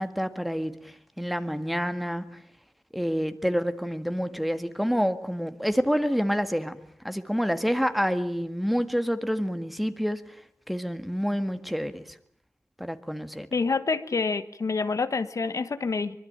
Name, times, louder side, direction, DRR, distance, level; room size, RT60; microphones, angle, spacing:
voice 1, 0.0-2.4 2.9-6.8 7.0-10.2 10.7-12.0 12.8-13.5, equal, ahead, 9 dB, 1.7 m, -28 dB
voice 2, 13.5-16.2, left 4 dB, 60° left, 11 dB, 1.4 m, -27 dB
24.0 x 22.0 x 8.8 m, 0.67 s
wide cardioid pair, 80°, 6 cm